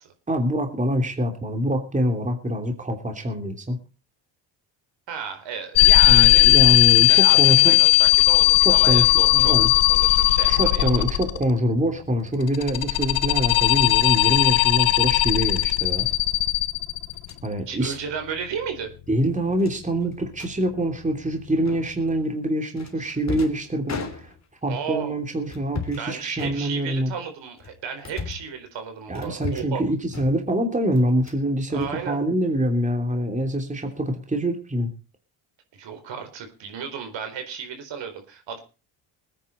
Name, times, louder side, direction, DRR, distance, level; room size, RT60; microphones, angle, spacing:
voice 1, 0.3-3.8 6.1-7.8 8.6-9.7 10.4-16.1 17.4-17.9 19.1-24.3 24.6-27.1 29.1-34.9, equal, 15° right, 4 dB, 3.1 m, -25 dB
voice 2, 5.1-6.5 7.0-9.5 9.9-11.0 17.7-18.9 23.0-23.1 24.7-25.1 26.0-29.8 31.7-32.2 35.7-38.6, right 7 dB, 65° right, 7 dB, 4.3 m, -34 dB
sound 1, 5.7-11.6 12.4-17.4, left 17 dB, 80° left, 1.3 m, -17 dB
sound 2, 14.2-14.5 16.0-16.2 17.1-17.4 17.8-18.0 18.3-18.5 18.8-18.9 19.6-20.5 21.7-22.1 22.8-24.6 25.4-26.1 26.4-27.1 27.6-28.5 29.1-29.8 30.1-30.6 30.9-31.4 31.7-32.6, left 5 dB, 35° left, 3.2 m, -37 dB
20.5 x 9.7 x 4.3 m, 0.33 s
cardioid pair, 90°, 47 cm